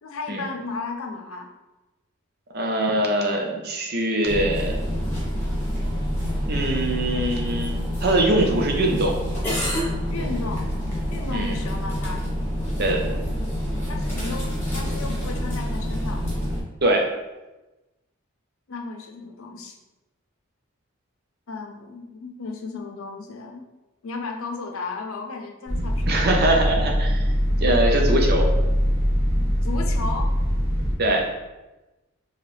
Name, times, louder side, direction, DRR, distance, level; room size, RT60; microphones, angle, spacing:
voice 1, 0.0-1.5 10.1-10.8 11.1-12.3 13.9-14.4 14.7-16.3 18.7-19.8 21.5-23.7 24.0-26.3 29.6-30.3, left 3 dB, 80° left, 3 dB, 0.6 m, -34 dB
voice 2, 2.5-4.8 6.5-7.7 8.0-9.2 11.3-11.6 12.8-13.0 16.8-17.1 26.1-27.2 27.6-28.5 31.0-31.3, right 1 dB, 50° right, 1 dB, 0.7 m, -22 dB
sound 1, 4.2-16.6, equal, 10° left, 1.3 m, -27 dB
sound 2, 25.7-30.9, equal, 30° right, 1.2 m, -22 dB
4.8 x 3.1 x 3.2 m, 1.1 s
head